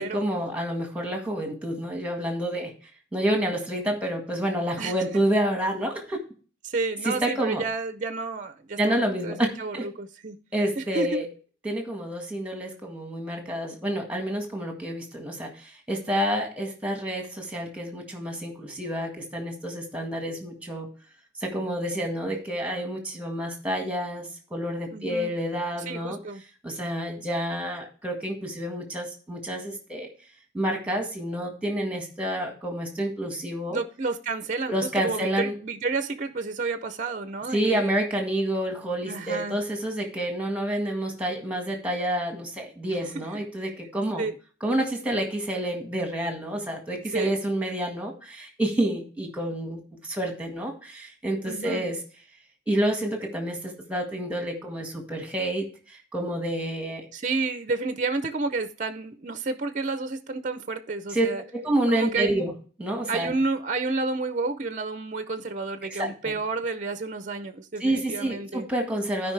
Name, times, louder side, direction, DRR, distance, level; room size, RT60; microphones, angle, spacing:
voice 1, 0.0-2.7 3.1-6.2 7.0-7.6 8.8-9.5 9.7-9.8 10.5-11.3 11.6-20.9 21.4-26.2 26.6-30.1 30.5-33.8 34.7-35.5 37.5-44.2 44.6-52.0 52.7-55.7 56.1-57.1 61.1-61.3 61.5-62.5 62.8-63.3 65.9-66.3 67.8-69.3, right 1 dB, 5° right, 1.7 m, -28 dB
voice 2, 6.6-10.4 10.8-11.2 24.9-25.3 25.9-26.4 33.7-37.9 39.0-39.6 43.1-43.4 44.2-44.4 47.1-47.3 51.4-51.9 57.1-61.4 61.9-62.4 63.1-68.7, right 3 dB, 40° right, 0.6 m, -30 dB
13.0 x 5.2 x 3.3 m
head